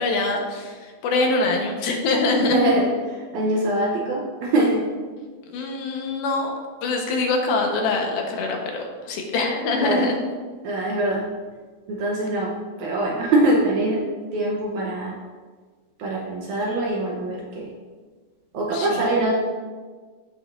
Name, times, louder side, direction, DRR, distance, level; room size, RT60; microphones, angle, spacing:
voice 1, 0.0-2.6 5.5-6.5 6.8-10.1 18.7-19.1, left 3 dB, 80° left, 1 dB, 2.9 m, -24 dB
voice 2, 2.4-4.8 9.8-10.1 10.6-11.3 11.9-14.0 14.3-15.2 16.0-17.7 18.5-19.3, right 1 dB, 70° right, -2 dB, 1.9 m, -23 dB
14.5 x 6.2 x 2.5 m, 1.5 s
omnidirectional pair, 4.2 m